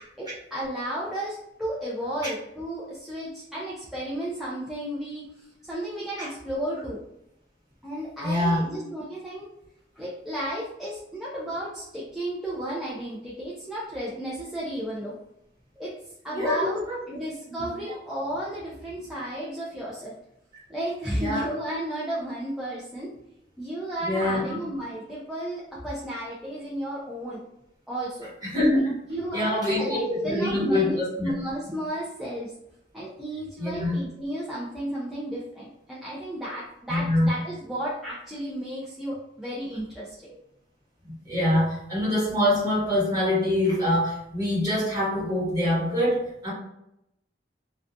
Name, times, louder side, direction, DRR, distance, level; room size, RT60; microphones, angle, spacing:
voice 1, 0.2-7.0 7.8-9.5 10.0-15.2 15.8-16.0 16.2-16.8 17.1-20.1 20.7-23.1 23.6-27.4 27.9-28.3 29.0-32.5 32.9-40.3, right 1 dB, ahead, -8 dB, 0.4 m, -33 dB
voice 2, 8.2-8.6 16.3-17.0 17.6-17.9 21.2-21.5 24.0-24.6 28.4-28.9 29.3-31.3 33.6-33.9 36.9-37.3 41.2-46.5, left 1 dB, 20° right, -7 dB, 1.3 m, -25 dB
2.4 x 2.3 x 2.5 m, 0.81 s
head